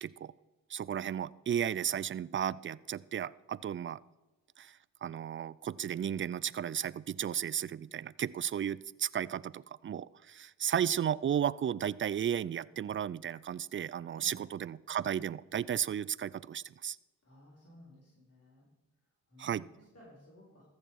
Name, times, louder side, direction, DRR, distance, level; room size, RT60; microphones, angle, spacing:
voice 1, 0.0-0.3 0.7-4.0 4.6-17.0 19.4-19.6, right 9 dB, 35° right, 21 dB, 0.4 m, -34 dB
voice 2, 14.1-14.5 17.2-18.7 19.3-20.6, equal, 40° left, -5 dB, 4.4 m, -57 dB
14.5 x 6.7 x 4.7 m, 1.1 s
supercardioid pair, 45°, 36 cm